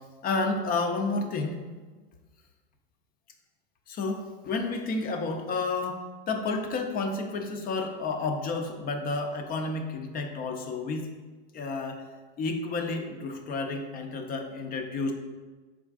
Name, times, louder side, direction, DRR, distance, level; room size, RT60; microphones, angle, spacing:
voice 1, 0.2-1.6 3.9-6.0 6.3-11.1 11.5-12.0 12.4-15.1, left 3 dB, 30° left, 5 dB, 0.5 m, -31 dB
4.4 x 3.5 x 2.4 m, 1.3 s
hypercardioid pair, 105°, 29 cm